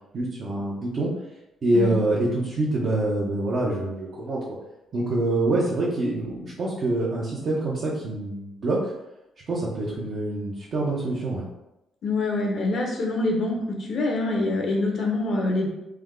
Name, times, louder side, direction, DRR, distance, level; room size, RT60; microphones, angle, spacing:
voice 1, 0.1-1.1 1.6-4.6 4.9-8.9 9.5-11.5, right 2 dB, 50° right, -6 dB, 0.8 m, -25 dB
voice 2, 12.0-15.7, left 2 dB, 60° left, 0 dB, 0.9 m, -25 dB
3.4 x 2.1 x 3.6 m, 0.91 s
cardioid pair, 90°, 0 cm